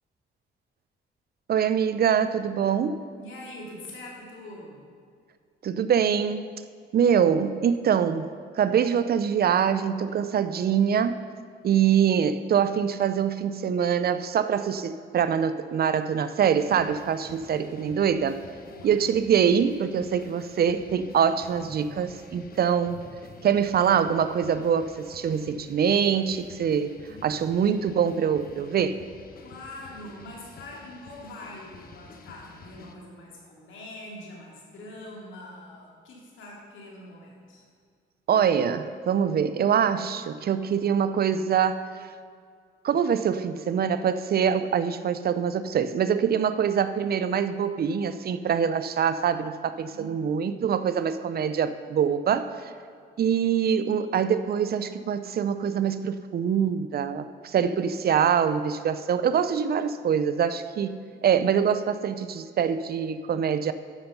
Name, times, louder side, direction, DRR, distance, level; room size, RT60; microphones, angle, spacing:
voice 1, 1.5-3.0 5.6-6.5 6.9-8.3 8.5-11.2 11.6-18.4 18.8-23.0 23.4-27.0 27.2-29.0 38.3-42.1 42.8-52.7 53.2-63.7, right 8 dB, 50° right, 12 dB, 0.5 m, -24 dB
voice 2, 3.2-4.8 11.6-11.8 18.6-19.0 29.4-37.6 49.9-50.8, left 1 dB, 75° left, -3 dB, 3.1 m, -44 dB
sound 1, 16.6-32.9, left 4 dB, 50° left, 1.1 m, -49 dB
13.0 x 5.9 x 5.5 m, 2.2 s
cardioid pair, 90°, 20 cm